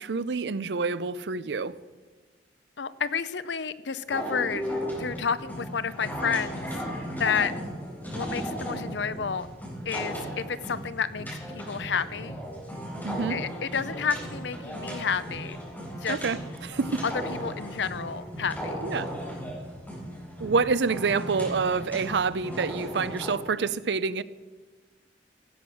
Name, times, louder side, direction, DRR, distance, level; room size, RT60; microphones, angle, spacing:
voice 1, 0.0-1.8 13.0-13.4 16.1-16.4 16.6-17.0 18.8-19.1 20.4-24.2, right 4 dB, 70° right, 17 dB, 0.5 m, -27 dB
voice 2, 2.8-6.8 7.1-7.5 8.1-9.5 9.9-12.4 13.3-15.6 15.9-16.2 17.0-18.8, left 6 dB, 80° left, 15 dB, 0.7 m, -30 dB
sound 1, 4.1-23.3, equal, 10° left, 4.3 m, -36 dB
17.0 x 7.9 x 6.2 m, 1.4 s
head